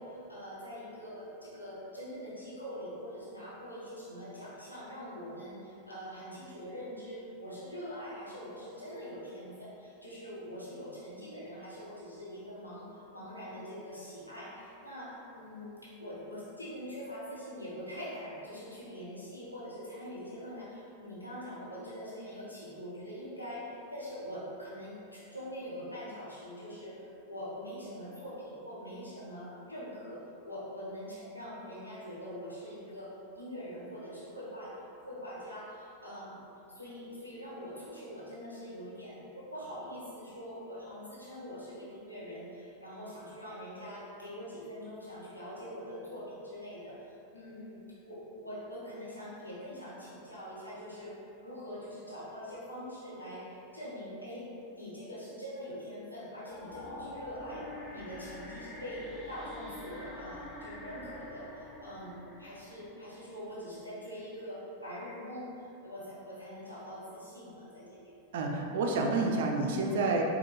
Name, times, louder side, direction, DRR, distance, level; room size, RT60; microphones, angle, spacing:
voice 1, 0.0-68.1, equal, 85° left, -9 dB, 0.8 m, -44 dB
sound 1, 56.5-63.6, left 1 dB, 20° left, 0.6 m, -46 dB
voice 2, 68.3-70.2, right 3 dB, 55° right, 1 dB, 0.4 m, -29 dB
4.3 x 2.2 x 3.0 m, 2.8 s
figure-of-eight pair, 90°, 0 cm